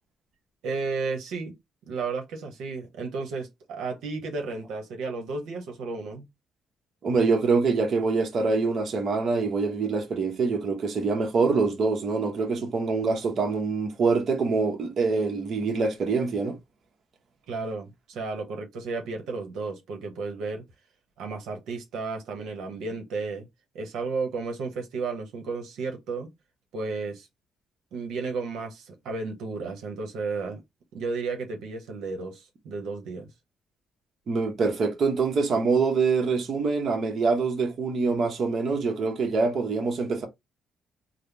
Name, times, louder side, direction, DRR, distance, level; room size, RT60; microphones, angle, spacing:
voice 1, 0.6-1.5 1.9-6.3 17.5-20.6 21.2-23.5 23.7-26.3 26.7-27.3 27.9-30.6 30.9-33.3, right 4 dB, 85° right, 0.9 m, -33 dB
voice 2, 7.0-16.6 34.3-40.3, right 4 dB, 55° right, 0.9 m, -25 dB
3.7 x 2.1 x 3.3 m
cardioid pair, 90°, 0 cm